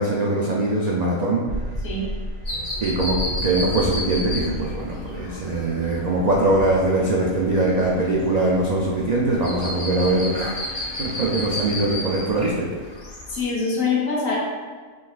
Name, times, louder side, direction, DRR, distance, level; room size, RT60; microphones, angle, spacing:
voice 1, 0.0-1.5 2.8-10.6 11.0-12.9, right 2 dB, 75° right, -3 dB, 0.3 m, -22 dB
sound 1, 1.5-12.6, equal, 20° right, 0.8 m, -37 dB
sound 2, 2.4-13.4, left 1 dB, 35° left, 1.0 m, -33 dB
sound 3, 4.3-12.7, left 2 dB, 55° left, 1.0 m, -44 dB
voice 2, 13.3-14.4, left 4 dB, 75° left, -3 dB, 1.4 m, -24 dB
5.9 x 3.1 x 2.3 m, 1.5 s
omnidirectional pair, 1.4 m